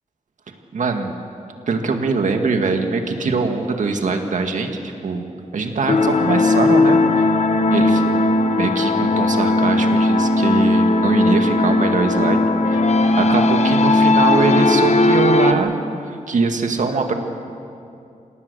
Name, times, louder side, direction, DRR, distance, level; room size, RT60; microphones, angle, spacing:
voice 1, 0.7-1.2 1.7-4.7 5.0-5.3 5.5-7.3 7.7-8.2 8.5-12.4 12.7-12.9 13.2-15.8 16.1-17.1, right 4 dB, 70° right, 4 dB, 2.0 m, -22 dB
sound 1, 5.9-15.5, left 2 dB, 55° left, 1.0 m, -17 dB
27.5 x 18.0 x 6.9 m, 2.6 s
wide cardioid pair, 160°, 13 cm